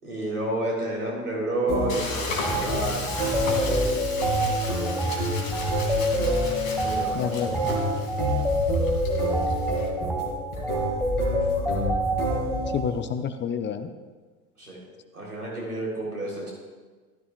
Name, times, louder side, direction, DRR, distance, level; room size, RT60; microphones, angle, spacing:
voice 1, 0.0-4.0 5.9-6.2 6.8-7.6 11.4-11.7 14.6-14.8 15.1-16.5, right 1 dB, 85° right, -3 dB, 3.7 m, -31 dB
sound 1, 1.7-12.9, right 1 dB, 85° left, 3.2 m, -29 dB
Frying (food), 1.9-9.9, left 3 dB, 60° left, 2.5 m, -36 dB
sound 2, 2.4-2.6 3.1-12.8, equal, ahead, 1.3 m, -27 dB
voice 2, 7.1-7.6 12.7-13.9, left 7 dB, 25° left, 9 dB, 0.7 m, -28 dB
15.5 x 13.5 x 2.4 m, 1.4 s
figure-of-eight pair, 75°, 45 cm